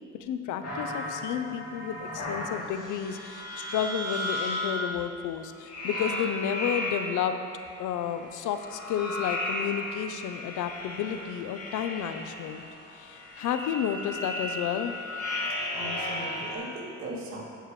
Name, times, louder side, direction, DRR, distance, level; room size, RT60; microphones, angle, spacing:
voice 1, 0.1-7.5 7.8-12.6 12.9-15.0, left 9 dB, 80° left, 9 dB, 0.6 m, -31 dB
sound 1, 0.6-4.9 5.6-7.3 8.4-16.5, left 1 dB, 50° left, 2.4 m, -35 dB
voice 2, 15.7-17.4, right 1 dB, 65° right, -5 dB, 2.4 m, -39 dB
15.5 x 6.7 x 3.2 m, 2.7 s
cardioid pair, 90°, 30 cm